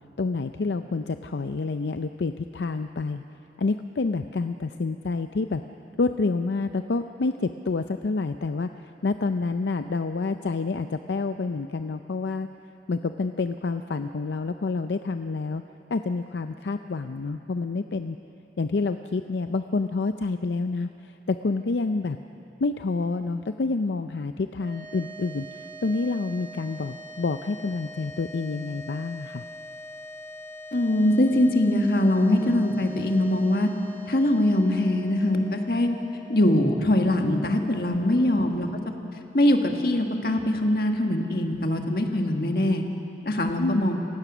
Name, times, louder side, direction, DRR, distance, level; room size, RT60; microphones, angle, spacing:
voice 1, 0.2-3.2 3.6-5.6 6.0-12.5 12.9-15.6 15.9-18.2 18.6-22.2 22.6-29.4 37.9-38.0 43.6-43.9, left 3 dB, 80° left, 8 dB, 0.5 m, -28 dB
sound 1, 24.5-39.0, left 1 dB, 25° right, 6.0 m, -44 dB
voice 2, 30.7-33.7 34.1-35.9 36.3-38.7 39.3-42.8 43.2-44.0, left 1 dB, 55° left, 4 dB, 1.6 m, -22 dB
28.0 x 16.0 x 6.1 m, 3.0 s
head